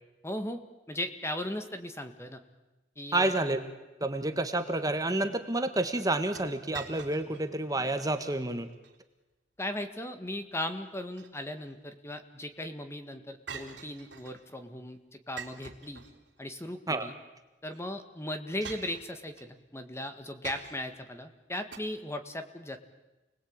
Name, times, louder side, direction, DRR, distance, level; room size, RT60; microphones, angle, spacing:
voice 1, 0.2-0.6 0.9-2.4 2.9-3.4 9.6-16.0 16.4-17.1 17.6-22.8, left 1 dB, 15° left, 8 dB, 1.8 m, -37 dB
voice 2, 3.1-3.6 4.0-8.7 16.9-17.1, right 2 dB, 20° right, 8 dB, 1.5 m, -29 dB
sound 1, 6.4-7.5 7.9-8.0 8.6-9.0 10.9-11.7 13.5-14.5 15.4-16.5 17.7-17.8 18.6-19.5 20.4-21.0 21.7-21.8, right 6 dB, 85° right, 3.9 m, -46 dB
29.5 x 21.0 x 8.8 m, 1.1 s
head